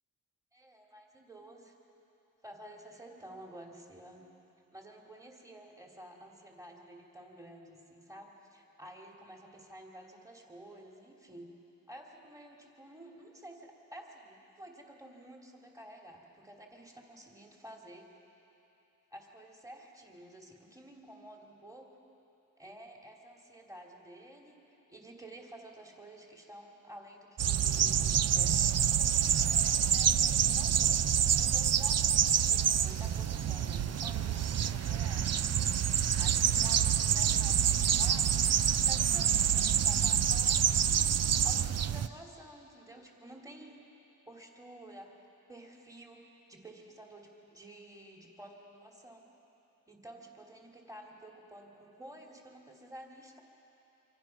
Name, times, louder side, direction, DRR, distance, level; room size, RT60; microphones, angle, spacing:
voice 1, 0.5-1.7 2.4-4.2 4.7-11.5 11.9-18.1 19.1-21.9 22.6-35.3 36.2-38.3 38.8-43.9 44.3-45.1 45.5-49.3 49.9-53.4, right 1 dB, 10° right, 0 dB, 3.0 m, -51 dB
sound 1, 27.4-42.1, right 9 dB, 50° right, 0.6 m, -27 dB
27.5 x 25.0 x 6.0 m, 3.0 s
cardioid pair, 105°, 33 cm